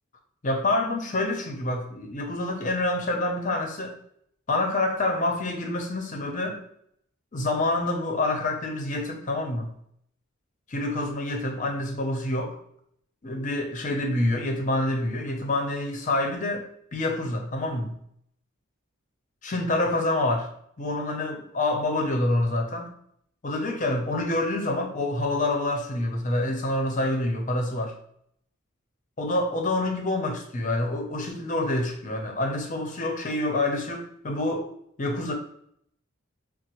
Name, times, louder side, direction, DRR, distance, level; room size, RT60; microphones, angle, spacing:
voice 1, 0.4-3.9 4.5-6.6 7.3-9.7 10.7-12.6 13.2-16.6 16.9-17.9 19.4-20.5 20.8-22.9 23.4-27.9 29.2-34.7 35.0-35.3, left 2 dB, 40° left, 2 dB, 0.6 m, -27 dB
4.0 x 2.0 x 2.9 m, 0.68 s
head